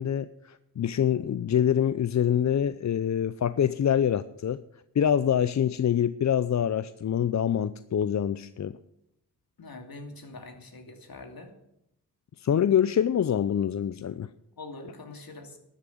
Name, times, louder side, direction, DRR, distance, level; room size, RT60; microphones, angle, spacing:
voice 1, 0.0-4.6 4.9-8.8 12.4-14.3, left 9 dB, 45° left, 15 dB, 0.5 m, -25 dB
voice 2, 9.6-11.5 14.6-15.6, left 2 dB, 60° left, 4 dB, 2.6 m, -43 dB
12.0 x 6.9 x 9.3 m, 0.81 s
cardioid pair, 50°, 40 cm